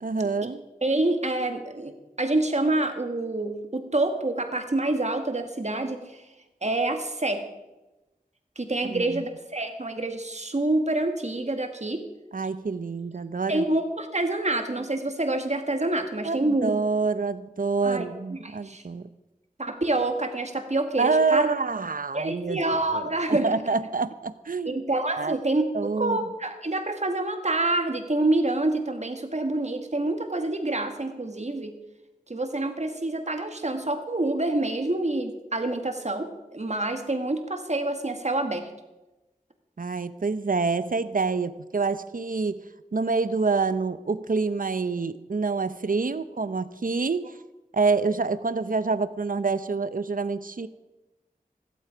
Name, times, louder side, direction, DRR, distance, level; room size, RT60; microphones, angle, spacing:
voice 1, 0.0-0.6 8.8-9.2 12.3-13.6 16.2-19.1 21.0-22.6 22.9-24.8 25.2-25.4 25.7-26.2 39.8-47.3 47.7-50.7, right 4 dB, 65° right, 13 dB, 0.7 m, -27 dB
voice 2, 0.8-1.9 2.2-6.2 6.6-7.4 8.6-12.0 13.5-16.7 17.8-18.0 18.4-18.8 19.6-21.5 22.1-23.8 24.7-31.8 32.3-38.7, right 2 dB, 50° right, 6 dB, 1.8 m, -27 dB
15.0 x 13.0 x 5.0 m, 1.0 s
wide cardioid pair, 55°, 15 cm